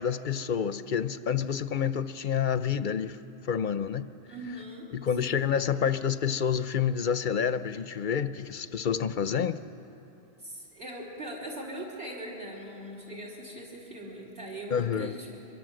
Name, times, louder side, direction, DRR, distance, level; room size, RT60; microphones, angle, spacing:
voice 1, 0.0-3.2 3.5-4.1 4.9-9.6 14.7-15.1, left 7 dB, 50° left, 0.7 m, -28 dB
voice 2, 4.3-4.9 5.2-5.4 10.4-15.4, right 1 dB, 55° right, 4.1 m, -40 dB
25.0 x 24.0 x 7.7 m
omnidirectional pair, 1.3 m